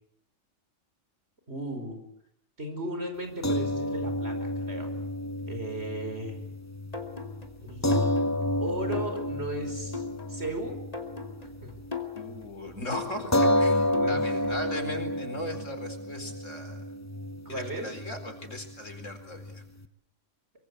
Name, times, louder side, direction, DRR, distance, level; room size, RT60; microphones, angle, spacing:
voice 1, 1.5-2.0 2.6-4.9 5.5-6.4 7.6-8.1 8.6-10.0 10.3-10.8 11.6-11.7 13.9-14.4 17.5-17.9, right 1 dB, 55° right, 6 dB, 5.4 m, -36 dB
sound 1, 3.4-11.9 12.3-12.4 13.3-19.9, left 1 dB, 15° left, 1.0 m, -30 dB
sound 2, 6.9-14.7, left 6 dB, 30° left, 2.8 m, -40 dB
voice 2, 12.1-16.9 17.5-19.6, left 1 dB, 85° left, 7 dB, 4.8 m, -38 dB
24.5 x 24.0 x 8.3 m, 0.74 s
omnidirectional pair, 1.3 m